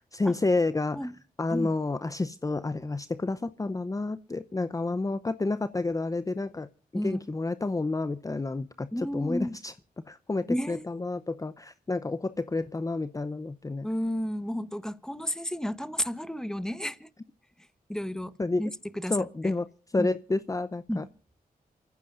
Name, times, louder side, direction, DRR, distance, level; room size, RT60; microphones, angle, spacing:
voice 1, 0.1-1.1 1.4-6.7 6.9-9.7 10.1-13.9 18.4-18.6 19.1-19.7 19.9-21.0, left 3 dB, 20° left, 0.7 m, -30 dB
voice 2, 8.9-9.6 10.5-10.9 13.8-17.1 17.9-18.3 18.6-19.5 20.0-20.1 20.9-21.0, equal, 5° left, 1.1 m, -32 dB
28.0 x 15.0 x 2.5 m
cardioid pair, 65°, 16 cm